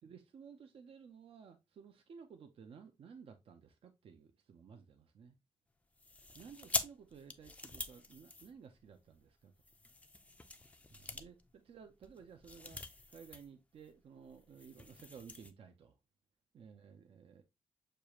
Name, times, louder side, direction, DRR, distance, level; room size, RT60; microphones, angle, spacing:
voice 1, 0.0-5.3 6.3-9.5 10.9-12.8 13.1-15.9 16.5-17.4, right 6 dB, 55° right, 0.5 m, -55 dB
sound 1, 6.0-9.0 9.6-13.5 13.8-13.9 14.2-15.5, left 2 dB, 10° left, 0.4 m, -44 dB
6.6 x 2.4 x 2.9 m
wide cardioid pair, 175°, 11 cm